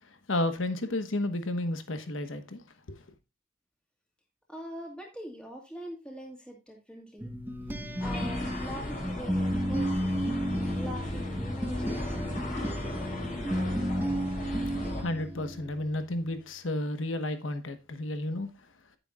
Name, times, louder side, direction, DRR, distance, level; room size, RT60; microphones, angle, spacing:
voice 1, 0.3-2.6 2.9-3.0 15.0-18.5, left 1 dB, 75° left, 1.2 m, -32 dB
voice 2, 4.5-7.3 7.8-10.2 10.7-12.2, equal, 5° left, 2.1 m, -43 dB
sound 1, 7.2-15.9, equal, 10° right, 1.0 m, -32 dB
sound 2, 8.0-15.0, left 1 dB, 40° left, 2.9 m, -37 dB
10.0 x 9.8 x 2.4 m
head